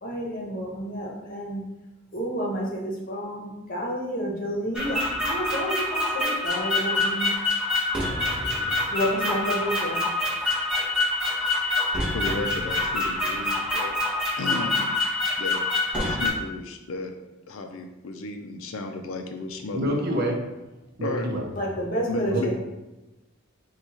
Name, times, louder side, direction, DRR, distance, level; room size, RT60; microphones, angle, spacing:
voice 1, 0.0-1.6 2.1-7.3 8.9-10.0 21.5-22.6, equal, 40° left, -3 dB, 1.0 m, -30 dB
sound 1, 4.7-16.3, left 2 dB, 5° right, 0.9 m, -26 dB
voice 2, 12.1-14.0 14.4-15.0 15.4-15.6 16.0-17.1 17.5-19.9 21.0-21.3 22.1-22.5, left 3 dB, 70° left, 5 dB, 0.4 m, -34 dB
voice 3, 19.7-20.4 21.0-21.5 22.3-22.4, right 1 dB, 45° right, 1 dB, 0.6 m, -26 dB
4.5 x 2.3 x 4.2 m, 1.0 s
head